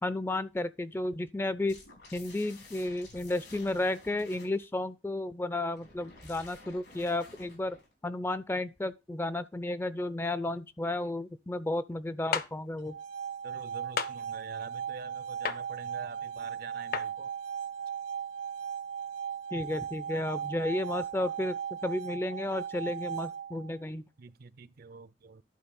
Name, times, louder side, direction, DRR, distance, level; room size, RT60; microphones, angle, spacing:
voice 1, 0.0-1.8 2.1-7.8 8.0-12.9 19.5-24.0, left 2 dB, 15° left, 0.4 m, -33 dB
sound 1, 1.7-4.6 5.7-7.9, left 2 dB, 85° left, 4.5 m, -52 dB
sound 2, 12.3-12.5 14.0-14.1 15.4-15.6 16.9-17.1, left 6 dB, 55° left, 0.6 m, -30 dB
sound 3, 12.8-23.8, right 8 dB, 85° right, 1.0 m, -37 dB
voice 2, 13.4-17.3 24.2-25.4, right 4 dB, 55° right, 0.4 m, -46 dB
11.5 x 4.0 x 5.2 m
head